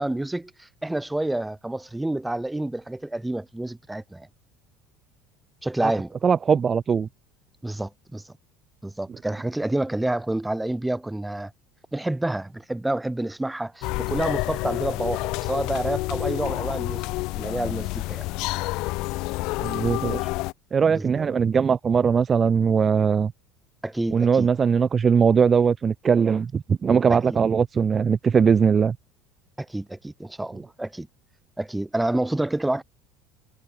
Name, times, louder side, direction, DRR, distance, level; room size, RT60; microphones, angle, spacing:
voice 1, 0.0-4.3 5.6-6.1 7.6-8.2 8.8-11.5 11.9-17.0 17.3-18.2 20.9-21.2 23.8-24.5 27.1-27.4 29.6-31.1 31.6-32.8, right 1 dB, 5° right, 0.8 m, -28 dB
voice 2, 6.2-7.1 19.6-20.2 20.7-23.3 24.1-29.0, right 6 dB, 30° right, 0.4 m, -20 dB
sound 1, 13.8-20.5, left 22 dB, 65° left, 1.4 m, -29 dB
supercardioid pair, 105°, 0 cm